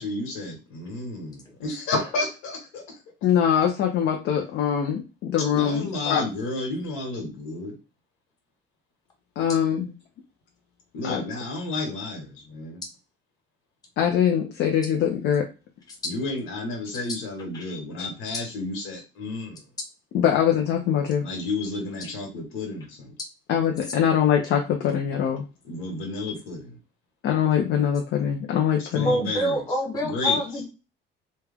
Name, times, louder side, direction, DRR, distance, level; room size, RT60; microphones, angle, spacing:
voice 1, 0.0-2.8 5.5-7.8 10.9-12.8 16.0-19.6 21.2-23.1 25.6-26.8 28.8-29.6 30.0-30.4, left 2 dB, 85° left, 1.5 m, -31 dB
voice 2, 3.2-6.2 9.4-9.9 11.0-11.2 14.0-15.4 20.1-21.2 23.5-25.4 27.2-29.1, left 8 dB, 60° left, 0.7 m, -23 dB
voice 3, 29.0-30.7, equal, 20° left, 0.8 m, -27 dB
3.2 x 2.3 x 3.4 m
cardioid pair, 160°, 20 cm